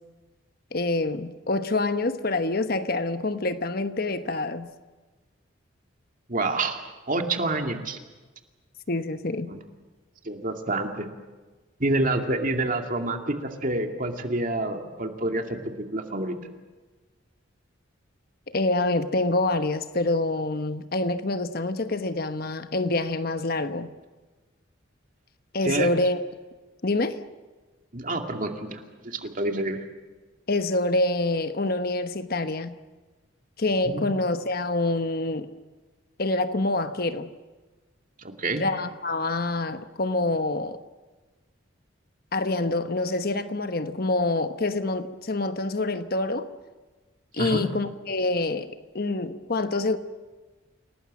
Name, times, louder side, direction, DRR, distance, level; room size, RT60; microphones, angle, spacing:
voice 1, 0.7-4.7 8.9-9.5 18.5-23.9 25.5-26.2 26.8-27.2 30.5-32.8 33.6-35.5 36.2-37.3 38.6-40.8 42.3-46.5 47.3-50.0, left 2 dB, 50° left, 1.1 m, -26 dB
voice 2, 6.3-6.8 7.1-8.0 9.5-9.6 10.2-11.1 11.8-16.4 25.6-25.9 27.9-29.8 33.9-34.1 38.2-38.6 47.4-47.7, right 2 dB, 45° right, 2.4 m, -28 dB
29.0 x 18.5 x 7.6 m
head